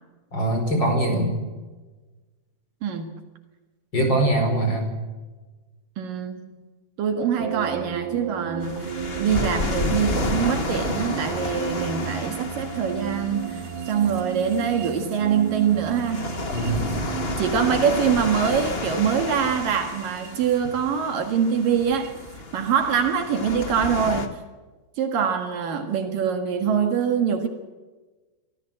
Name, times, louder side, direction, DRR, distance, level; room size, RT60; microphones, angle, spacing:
voice 1, 0.3-1.4 3.9-4.9 16.5-16.9, right 1 dB, 30° left, 5.5 m, -22 dB
voice 2, 2.8-3.1 6.0-6.6 7.0-8.9 9.2-16.3 17.4-22.2 22.5-24.4 25.0-27.5, right 7 dB, 65° right, 3.3 m, -24 dB
sound 1, 7.4-22.4, right 8 dB, 85° right, 3.5 m, -34 dB
sound 2, 8.6-24.3, left 3 dB, 55° left, 0.6 m, -32 dB
24.5 x 16.5 x 7.7 m
omnidirectional pair, 4.3 m